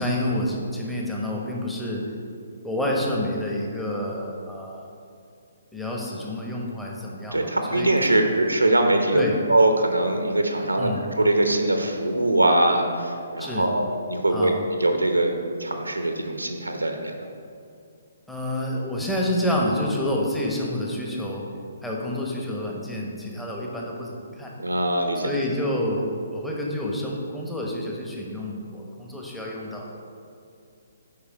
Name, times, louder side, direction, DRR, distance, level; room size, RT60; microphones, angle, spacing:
voice 1, 0.0-2.0 2.6-4.9 5.7-7.9 9.1-9.4 10.8-11.0 13.4-13.7 14.3-14.6 18.3-21.4 21.8-24.5 25.2-30.0, left 1 dB, 5° left, -3 dB, 1.2 m, -28 dB
voice 2, 7.3-14.5 14.8-15.3 15.6-17.1 24.6-25.3, right 1 dB, 85° right, 4 dB, 0.9 m, -22 dB
8.6 x 5.2 x 5.1 m, 2.4 s
figure-of-eight pair, 130°, 0 cm